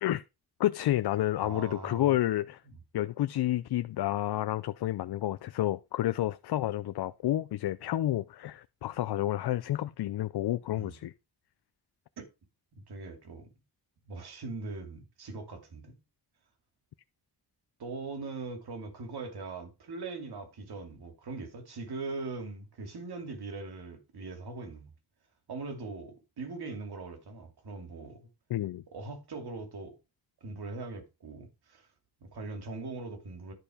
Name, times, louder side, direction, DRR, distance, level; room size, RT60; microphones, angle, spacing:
voice 1, 0.6-2.6 2.9-11.1 28.5-28.8, left 14 dB, 70° left, 0.6 m, -30 dB
voice 2, 1.4-2.2 2.7-2.8 10.8-11.0 12.2-12.3 12.9-13.5 14.1-16.0 17.8-24.9 25.5-28.3 28.9-30.0 30.4-31.9 32.2-33.5, right 3 dB, 70° right, 2.6 m, -41 dB
11.0 x 4.7 x 5.0 m
wide cardioid pair, 115°, 40 cm